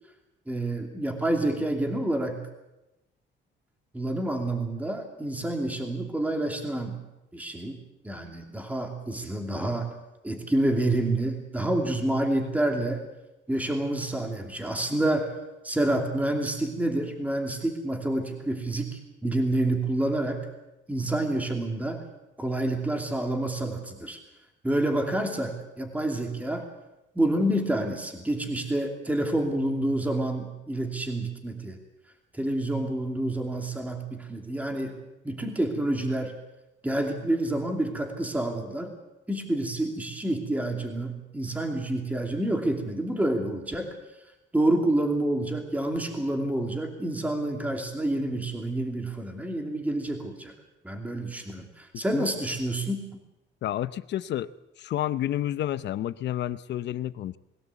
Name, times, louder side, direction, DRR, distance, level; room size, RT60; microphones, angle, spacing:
voice 1, 0.5-2.4 3.9-7.0 7.3-9.9 10.2-13.0 13.5-15.3 15.6-20.5 20.9-22.0 22.4-24.2 24.6-26.7 27.1-31.8 32.3-36.4 36.8-39.0 39.3-43.9 44.5-50.5 50.8-53.1, right 1 dB, 5° right, 3 dB, 2.7 m, -28 dB
voice 2, 53.6-54.5 54.8-57.4, left 12 dB, 60° left, 15 dB, 0.8 m, -30 dB
22.0 x 16.5 x 8.3 m, 0.96 s
cardioid pair, 150°, 20 cm